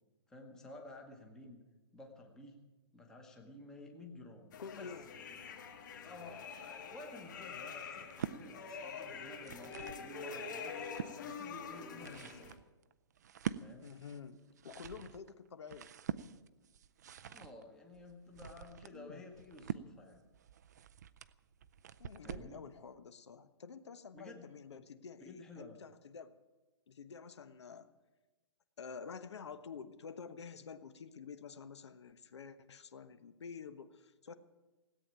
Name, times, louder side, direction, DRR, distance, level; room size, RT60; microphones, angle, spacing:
voice 1, 0.3-1.6 1.9-2.6 2.9-4.9 6.0-10.8 11.2-12.5 13.6-14.0 17.3-20.2 22.2-22.7 24.1-24.5 25.2-25.8, left 2 dB, 5° left, 1 dB, 1.0 m, -53 dB
sound 1, 4.5-12.6, left 6 dB, 45° left, 1.8 m, -46 dB
voice 2, 4.6-5.1 12.0-12.3 13.8-15.9 18.9-19.2 22.0-26.3 26.9-27.9 28.8-34.3, left 6 dB, 75° left, 11 dB, 1.2 m, -49 dB
sound 2, 7.9-8.4 9.2-10.1 10.5-11.2 11.7-22.6, right 9 dB, 40° right, 0.5 m, -45 dB
17.0 x 8.7 x 9.0 m, 1.1 s
hypercardioid pair, 175°, 14 cm